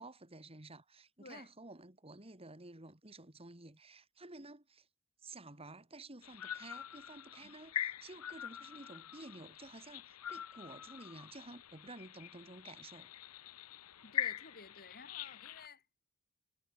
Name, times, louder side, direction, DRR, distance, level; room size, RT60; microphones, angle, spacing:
voice 1, 0.0-4.9 5.2-13.1, right 2 dB, 25° right, 3.0 m, -52 dB
sound 1, 6.2-15.7, left 10 dB, 85° left, 0.8 m, -44 dB
voice 2, 14.0-15.8, left 4 dB, 45° left, 3.7 m, -54 dB
head